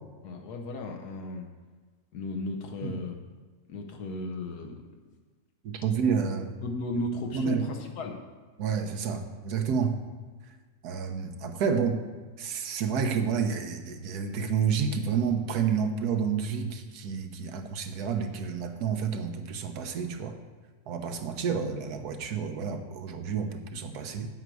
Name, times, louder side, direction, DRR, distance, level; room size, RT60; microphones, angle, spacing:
voice 1, 0.2-1.5 2.1-3.2 3.7-4.8 6.6-8.2, left 2 dB, 85° left, 3 dB, 1.4 m, -35 dB
voice 2, 5.6-6.5 7.3-7.6 8.6-10.0 10.8-12.0 12.4-20.4 20.9-24.3, right 6 dB, 90° right, 6 dB, 1.4 m, -29 dB
9.0 x 8.0 x 4.7 m, 1.4 s
omnidirectional pair, 1.6 m